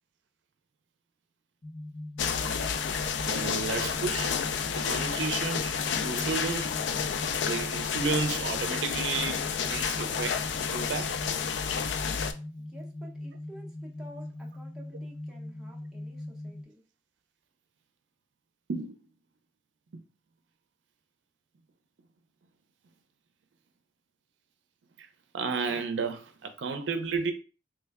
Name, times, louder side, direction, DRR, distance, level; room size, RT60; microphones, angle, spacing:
sound 1, 1.6-16.6, left 1 dB, 45° left, 0.8 m, -41 dB
sound 2, 2.2-12.3, left 7 dB, 75° left, 0.3 m, -30 dB
voice 1, 3.2-4.4 4.7-6.7 7.4-10.4 10.7-11.1 18.7-19.0 25.3-27.3, right 4 dB, 90° right, 0.5 m, -32 dB
voice 2, 12.6-16.8, equal, 5° right, 0.7 m, -51 dB
3.2 x 2.1 x 3.4 m
head